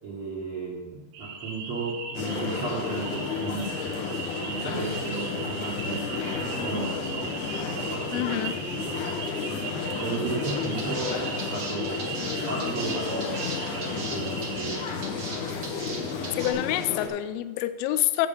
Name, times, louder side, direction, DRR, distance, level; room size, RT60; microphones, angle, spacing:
voice 1, 0.0-3.8 4.4-7.4 7.7-9.2 9.9-12.1 12.4-14.9, right 3 dB, 50° right, -5 dB, 1.7 m, -34 dB
sound 1, 1.1-14.9, right 5 dB, 65° right, 2.2 m, -38 dB
sound 2, 2.1-17.1, left 5 dB, 65° left, 2.3 m, -32 dB
voice 2, 8.1-8.5 16.4-18.3, left 13 dB, 80° left, 12 dB, 2.4 m, -27 dB
sound 3, 10.4-16.5, right 3 dB, 90° right, 0.9 m, -38 dB
7.9 x 7.4 x 6.8 m, 1.3 s
omnidirectional pair, 4.5 m